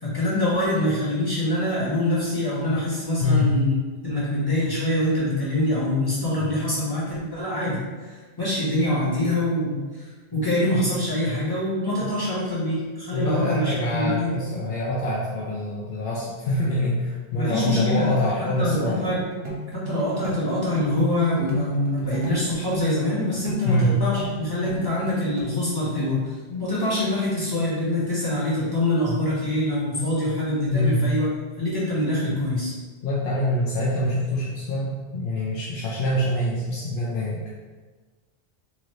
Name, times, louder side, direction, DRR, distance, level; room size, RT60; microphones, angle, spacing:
voice 1, 0.0-3.7 4.0-14.3 17.3-18.1 18.4-19.2 19.7-26.3 26.6-31.3 31.6-32.7, left 1 dB, 20° left, -8 dB, 0.9 m, -25 dB
voice 2, 3.2-3.5 12.0-12.1 13.1-19.2 23.7-23.9 26.5-26.6 30.7-31.0 33.0-37.5, left 1 dB, 60° left, -6 dB, 0.7 m, -25 dB
sound 1, 18.7-25.6, right 3 dB, 65° right, 1.0 m, -34 dB
2.8 x 2.6 x 3.0 m, 1.4 s
omnidirectional pair, 1.1 m